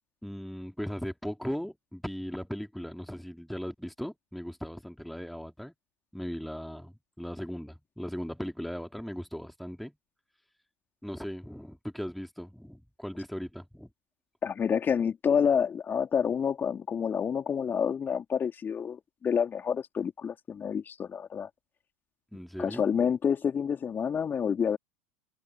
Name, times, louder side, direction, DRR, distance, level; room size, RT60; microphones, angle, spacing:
voice 1, 0.2-5.7 6.1-9.9 11.0-13.9 22.3-22.9, equal, ahead, 3.3 m, -38 dB
voice 2, 14.4-21.5 22.6-24.8, left 7 dB, 25° left, 3.6 m, -28 dB
figure-of-eight pair, 80°, 8 cm